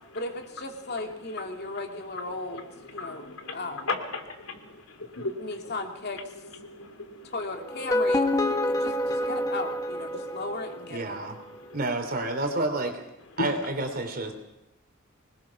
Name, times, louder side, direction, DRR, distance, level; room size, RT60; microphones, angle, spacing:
voice 1, 0.1-4.0 5.4-6.3 7.2-8.3 8.6-11.3, left 2 dB, 50° left, 4 dB, 2.7 m, -36 dB
voice 2, 2.9-3.6 3.9-5.4 6.6-7.3 8.7-9.2 10.1-10.4 13.4-13.5, left 3 dB, 80° left, 6 dB, 3.3 m, -35 dB
sound 1, 7.7-10.8, left 1 dB, 15° left, 1.5 m, -27 dB
voice 3, 10.9-11.4 11.7-13.0 13.4-14.3, right 2 dB, 45° right, 5 dB, 3.2 m, -29 dB
25.0 x 20.5 x 6.0 m, 0.91 s
head